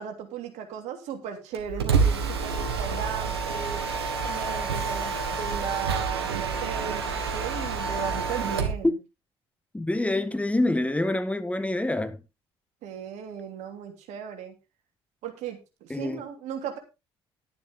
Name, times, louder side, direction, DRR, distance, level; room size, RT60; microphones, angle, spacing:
voice 1, 0.0-3.8 4.2-9.0 12.8-14.5 15.2-16.8, right 8 dB, 65° right, 3.1 m, -36 dB
Mechanisms, 1.5-8.8, right 5 dB, 90° right, 1.6 m, -28 dB
voice 2, 9.7-12.2 15.9-16.2, left 2 dB, 10° left, 1.4 m, -26 dB
12.0 x 10.0 x 3.7 m
hypercardioid pair, 50°, 13 cm